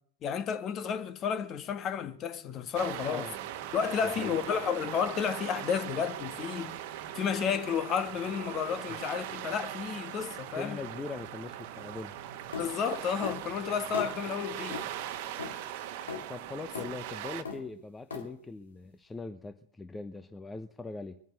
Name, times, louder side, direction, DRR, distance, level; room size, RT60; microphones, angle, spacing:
voice 1, 0.2-3.3 3.7-6.8 7.1-10.8 12.6-14.8, left 7 dB, 30° left, 1.3 m, -32 dB
sound 1, 2.7-17.4, right 11 dB, 50° right, 1.3 m, -40 dB
voice 2, 4.0-4.4 8.9-9.0 10.6-12.2 16.3-21.2, left 3 dB, 10° left, 0.8 m, -41 dB
sound 2, 12.5-12.7 13.2-13.4 13.9-14.1 14.7-14.9 15.4-15.6 16.1-16.2 16.7-16.9 17.4-17.6 18.1-18.3, left 5 dB, 70° left, 2.6 m, -36 dB
22.5 x 9.1 x 6.7 m
figure-of-eight pair, 90°, 0 cm